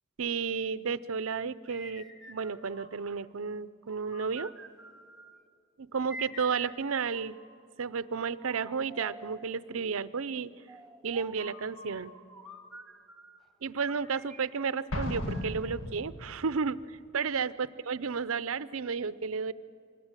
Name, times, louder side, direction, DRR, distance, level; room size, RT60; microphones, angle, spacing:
voice 1, 0.2-4.5 5.8-7.3 7.8-10.5 11.0-12.1 13.6-19.5, right 5 dB, 65° right, 16 dB, 0.6 m, -32 dB
sound 1, 1.6-3.3 3.8-5.4 6.1-7.7 8.4-9.6 10.7-13.4 13.9-15.7, right 1 dB, ahead, 1.2 m, -48 dB
Explosion, 14.9-16.5, left 1 dB, 70° left, 1.9 m, -35 dB
25.0 x 20.5 x 9.0 m, 2.4 s
head